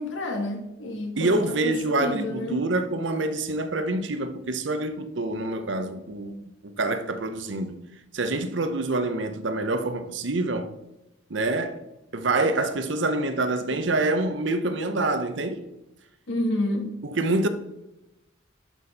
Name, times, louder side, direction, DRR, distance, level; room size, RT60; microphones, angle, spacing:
voice 1, 0.0-2.6 16.3-17.0, left 1 dB, 75° left, 1.6 m, -29 dB
voice 2, 1.2-6.4 6.6-7.8 8.1-10.7 11.3-11.8 12.1-15.6 17.1-17.5, right 2 dB, 70° right, 0.8 m, -26 dB
11.5 x 4.4 x 4.1 m
head